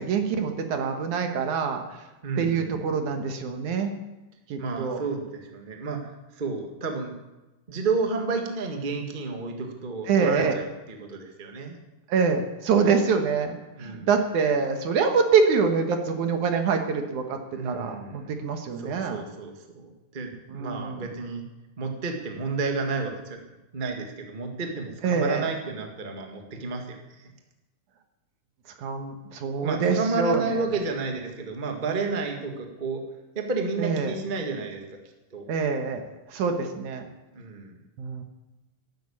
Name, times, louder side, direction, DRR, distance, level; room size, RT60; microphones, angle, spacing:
voice 1, 0.0-2.0 2.4-3.9 4.5-5.0 10.1-10.6 12.1-19.2 20.5-21.1 25.0-25.5 28.8-30.6 33.8-34.2 35.5-37.1 38.0-38.2, right 5 dB, 70° right, 6 dB, 2.6 m, -25 dB
voice 2, 2.2-2.8 4.6-7.1 7.7-11.7 12.8-13.1 13.8-14.1 17.5-18.3 18.8-21.4 21.8-23.4 23.7-27.3 29.6-33.0 33.3-34.8 35.3-35.4 37.3-37.8, right 4 dB, 25° right, 3 dB, 1.2 m, -31 dB
12.5 x 12.0 x 8.6 m, 1.1 s
omnidirectional pair, 3.9 m